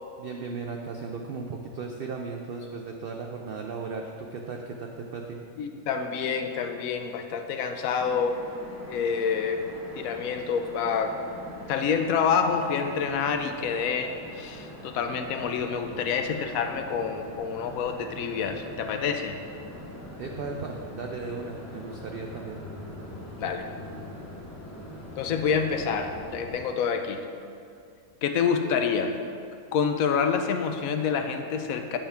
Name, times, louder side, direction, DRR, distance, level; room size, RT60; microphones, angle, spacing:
voice 1, 0.2-5.4 20.2-22.6, right 4 dB, 80° right, 2 dB, 0.5 m, -36 dB
voice 2, 5.6-8.4 8.9-9.7 10.0-11.2 11.7-19.4 23.4-23.7 25.2-27.2 28.2-29.2 29.7-32.0, left 6 dB, 75° left, 6 dB, 1.0 m, -27 dB
sound 1, 8.0-26.5, equal, 15° left, 0.7 m, -42 dB
8.6 x 5.6 x 3.5 m, 2.3 s
omnidirectional pair, 1.6 m